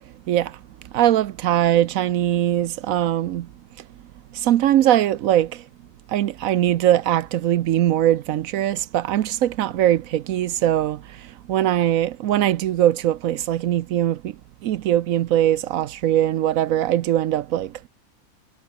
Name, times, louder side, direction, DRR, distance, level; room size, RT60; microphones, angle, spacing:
voice 1, 0.9-3.5 4.4-5.5 6.1-11.0 11.5-14.3 14.6-17.7, right 12 dB, 75° right, 1.0 m, -21 dB
omnidirectional pair, 1.5 m